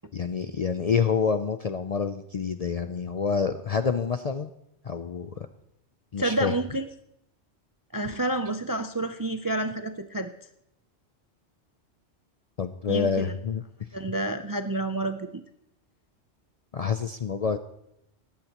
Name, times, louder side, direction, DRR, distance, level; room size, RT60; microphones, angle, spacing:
voice 1, 0.1-4.5 4.8-5.5 6.1-6.5 12.6-13.6 16.7-17.6, left 6 dB, 50° left, 9 dB, 0.5 m, -27 dB
voice 2, 6.2-6.9 7.9-10.3 12.9-13.3 13.9-15.4, right 2 dB, 35° right, 8 dB, 0.3 m, -29 dB
19.0 x 14.5 x 3.0 m, 0.78 s
omnidirectional pair, 1.2 m